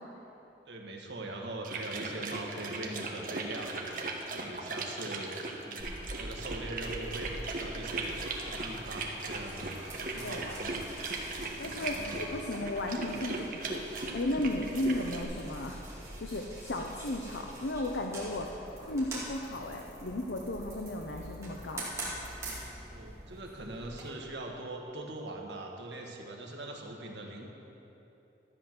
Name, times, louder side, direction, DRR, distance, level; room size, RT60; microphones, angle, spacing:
voice 1, 0.7-4.0 4.3-5.3 5.6-8.2 8.4-10.8 11.5-12.3 22.9-27.5, right 2 dB, 80° right, 1 dB, 1.5 m, -42 dB
sound 1, 1.6-15.2, right 3 dB, 50° right, 1.1 m, -38 dB
sound 2, 5.8-24.0, right 1 dB, 15° right, 2.4 m, -44 dB
voice 2, 11.6-13.8 14.1-21.9, left 1 dB, 85° left, 2 dB, 0.8 m, -35 dB
13.0 x 8.1 x 6.0 m, 3.0 s
head